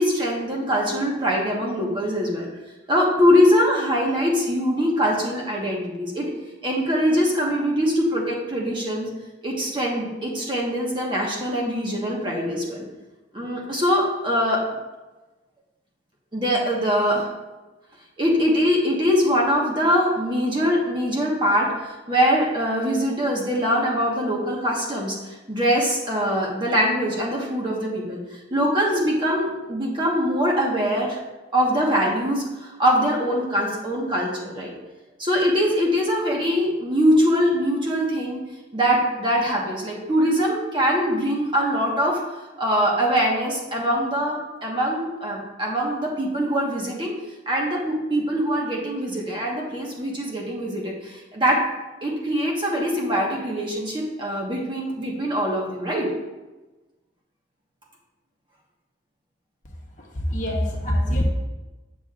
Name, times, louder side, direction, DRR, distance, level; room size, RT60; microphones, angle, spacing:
voice 1, 0.0-2.5 2.9-6.3 6.6-9.1 9.4-12.9 13.3-14.6 16.3-17.3 18.2-25.2 25.5-28.2 28.5-31.2 31.5-34.7 35.2-38.4 38.7-42.2 42.6-47.1 47.5-51.6 52.0-56.1, equal, 25° right, -2 dB, 1.3 m, -23 dB
voice 2, 59.6-61.2, equal, 40° left, -1 dB, 1.1 m, -25 dB
9.0 x 6.2 x 2.5 m, 1.1 s
head